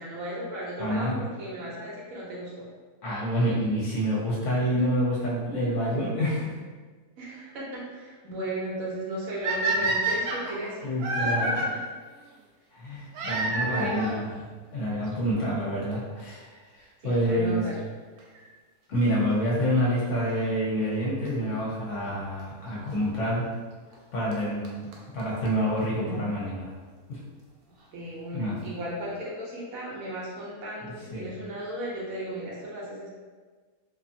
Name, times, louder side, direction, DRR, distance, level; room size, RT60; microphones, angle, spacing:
voice 1, 0.0-2.7 7.2-10.9 11.2-11.8 13.6-14.2 15.2-15.5 17.0-17.8 27.9-33.1, right 1 dB, 70° right, -5 dB, 1.1 m, -36 dB
voice 2, 0.8-1.2 3.0-6.6 10.8-11.6 12.7-14.4 14.7-17.7 18.9-23.5 24.1-24.9 25.1-26.7 27.1-27.2 28.3-28.6 30.8-31.3, equal, 60° left, -6 dB, 0.9 m, -27 dB
sound 1, 9.4-11.7 13.1-14.2 15.1-15.2 15.9-16.0 16.2-16.3 18.2-18.4 21.3-21.4 22.4-22.5 23.9-24.0 24.3-24.4 24.6-24.7 24.9-25.0 25.2-25.3 25.5-25.6 25.8-25.9, right 2 dB, 90° right, 1.1 m, -28 dB
2.6 x 2.6 x 2.5 m, 1.4 s
omnidirectional pair, 1.6 m